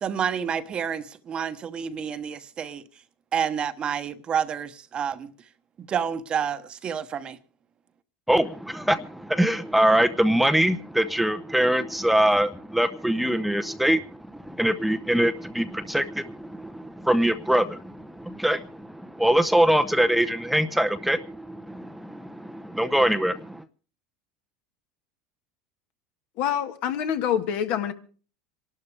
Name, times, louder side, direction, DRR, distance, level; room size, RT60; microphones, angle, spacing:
voice 1, 0.0-2.8 3.3-5.3 5.8-7.4, right 7 dB, 35° right, 1.1 m, -29 dB
voice 2, 8.3-23.6, right 1 dB, 5° right, 0.7 m, -23 dB
voice 3, 26.4-27.9, left 9 dB, 60° left, 1.5 m, -26 dB
26.5 x 12.0 x 3.4 m
supercardioid pair, 105°, 3 cm